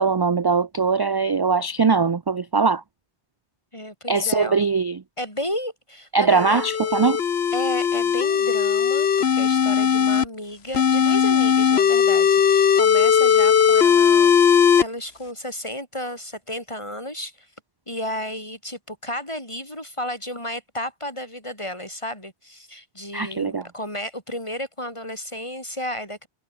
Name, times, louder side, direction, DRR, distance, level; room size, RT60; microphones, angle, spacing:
voice 1, 0.0-2.8 4.1-5.0 6.1-7.2 23.1-23.6, right 4 dB, 35° right, 0.4 m, -21 dB
voice 2, 3.7-4.7 5.2-6.6 7.5-17.5 17.9-26.3, left 1 dB, 25° left, 7.6 m, -33 dB
sound 1, 6.3-10.2 10.7-14.8, left 7 dB, 65° left, 1.3 m, -18 dB
omnidirectional pair, 1.2 m